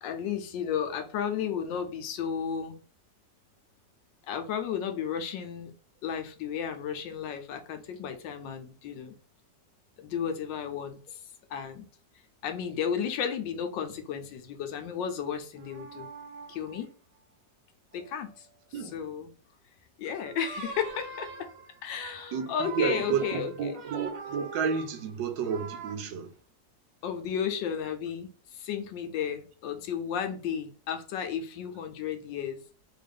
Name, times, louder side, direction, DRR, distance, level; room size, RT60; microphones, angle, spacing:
voice 1, 0.0-2.7 4.3-5.7 6.0-9.1 10.0-11.2 11.5-11.9 12.4-16.1 16.5-16.9 17.9-18.5 18.7-19.3 20.0-21.5 21.8-23.8 27.0-32.6, left 7 dB, 80° left, 1.3 m, -33 dB
Greensleeves creepy child for rpg, 15.6-16.8 17.9-18.2 20.2-25.9, right 4 dB, 60° right, 1.0 m, -43 dB
voice 2, 22.3-26.3, right 6 dB, 80° right, 1.2 m, -31 dB
3.3 x 2.4 x 3.4 m
omnidirectional pair, 2.0 m